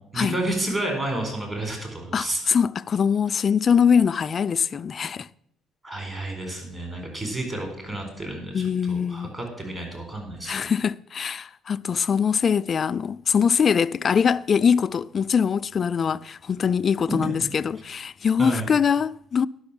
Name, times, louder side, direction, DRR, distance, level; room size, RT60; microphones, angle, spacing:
voice 1, 0.1-2.4 5.8-10.7 18.4-18.7, right 1 dB, 25° right, 4.1 m, -31 dB
voice 2, 2.1-5.3 8.5-9.3 10.5-19.5, left 7 dB, 40° left, 0.3 m, -22 dB
11.5 x 6.0 x 7.1 m
cardioid pair, 95°, 0 cm